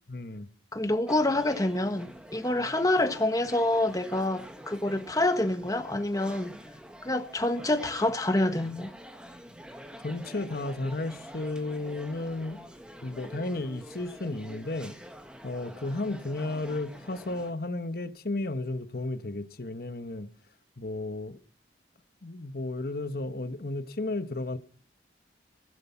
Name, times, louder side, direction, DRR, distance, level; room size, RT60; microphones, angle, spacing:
voice 1, 0.1-0.5 10.0-12.6 13.0-14.9 15.4-20.3 20.8-21.4 22.2-24.6, left 2 dB, 55° left, 1.1 m, -33 dB
voice 2, 0.7-6.5 7.0-8.9, left 1 dB, 20° left, 1.4 m, -27 dB
sound 1, 1.1-17.5, equal, 5° right, 1.5 m, -46 dB
16.0 x 11.5 x 5.7 m
head